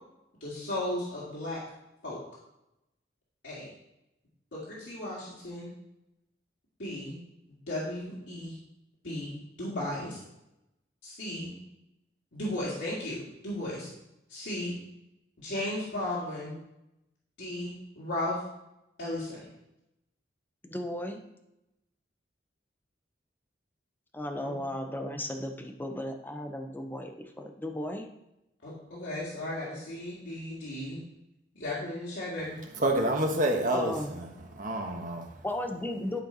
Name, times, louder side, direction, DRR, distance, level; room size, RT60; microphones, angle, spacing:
voice 1, 0.4-1.6 2.0-2.2 3.4-3.7 4.5-5.7 6.8-7.2 7.7-8.6 9.0-10.2 11.0-11.5 12.3-13.9 14.3-14.8 15.4-16.6 17.4-18.4 19.0-19.5 24.4-24.5 28.6-31.0 31.5-32.6, left 1 dB, 85° left, -8 dB, 2.1 m, -35 dB
voice 2, 20.6-21.2 24.1-28.1 33.7-34.1 35.4-36.2, left 1 dB, 10° left, 4 dB, 0.8 m, -35 dB
voice 3, 32.8-34.2 34.5-35.3, right 1 dB, 45° right, 2 dB, 1.3 m, -28 dB
11.5 x 4.4 x 4.0 m, 0.87 s
head